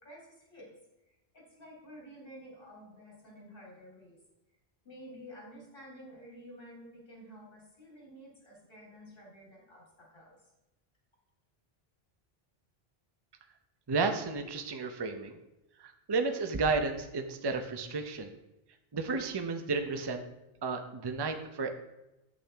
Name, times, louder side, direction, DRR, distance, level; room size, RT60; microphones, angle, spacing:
voice 1, 0.0-0.7 1.1-4.2 4.8-10.5, equal, 60° left, -3 dB, 3.3 m, -51 dB
voice 2, 13.9-15.4 15.8-18.3 18.9-20.2 20.6-21.7, right 4 dB, 30° right, 6 dB, 0.6 m, -32 dB
8.6 x 8.4 x 3.4 m, 0.96 s
omnidirectional pair, 1.0 m